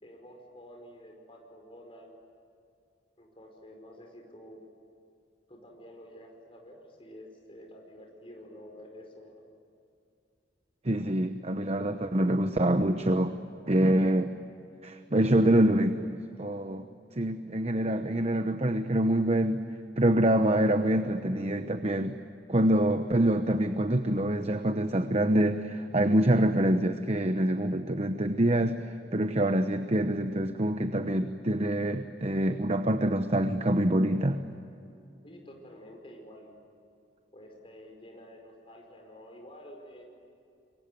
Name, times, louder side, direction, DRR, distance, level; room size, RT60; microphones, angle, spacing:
voice 1, 0.0-2.2 3.2-4.6 5.5-9.4 35.2-36.6 37.3-40.0, equal, 30° left, 1 dB, 5.0 m, -49 dB
voice 2, 10.8-13.3 13.7-14.3 14.8-16.8 17.2-19.7 20.0-22.2 22.5-28.7 29.1-34.4, right 1 dB, 35° right, 8 dB, 1.0 m, -25 dB
27.0 x 23.5 x 9.3 m, 2.5 s
head